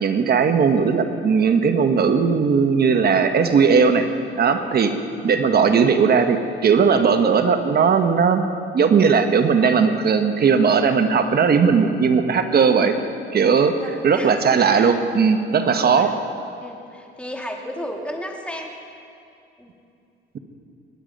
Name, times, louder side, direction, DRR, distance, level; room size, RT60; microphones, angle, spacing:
voice 1, 0.0-4.1 4.4-4.9 5.2-8.4 8.7-13.0 13.3-13.7 14.0-16.1, right 6 dB, 55° right, 7 dB, 1.2 m, -17 dB
voice 2, 13.6-15.0 15.5-16.2 16.6-18.7 19.6-19.7, equal, 5° left, 1 dB, 2.3 m, -34 dB
22.0 x 10.0 x 5.3 m, 2.6 s
cardioid pair, 90°, 20 cm